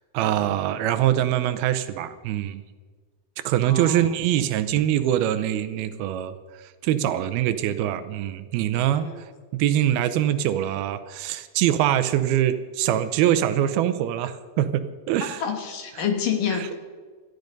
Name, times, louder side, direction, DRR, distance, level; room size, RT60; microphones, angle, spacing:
voice 1, 0.1-2.6 3.4-6.4 6.8-9.1 9.5-15.4, right 11 dB, 80° right, 11 dB, 2.6 m, -23 dB
voice 2, 3.7-4.1 8.9-9.2 15.4-16.7, left 7 dB, 65° left, 5 dB, 3.0 m, -28 dB
17.5 x 13.0 x 5.3 m, 1.4 s
omnidirectional pair, 4.5 m